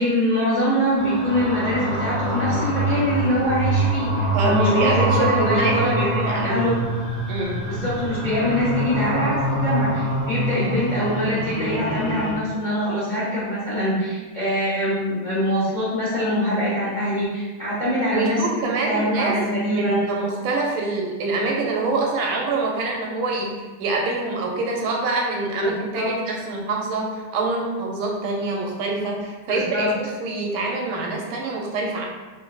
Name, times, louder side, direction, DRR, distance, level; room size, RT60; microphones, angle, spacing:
voice 1, 0.0-6.7 7.7-18.4 18.9-20.0 25.6-25.7 25.9-26.1 29.5-29.9, equal, 30° left, -10 dB, 0.9 m, -23 dB
Spooky Ghost Sound, 1.0-12.3, right 1 dB, 50° right, 0.3 m, -25 dB
voice 2, 4.3-6.7 7.3-7.6 18.1-19.4 19.7-32.1, right 3 dB, 80° right, -1 dB, 1.4 m, -25 dB
4.7 x 3.3 x 2.3 m, 1.2 s
omnidirectional pair, 2.4 m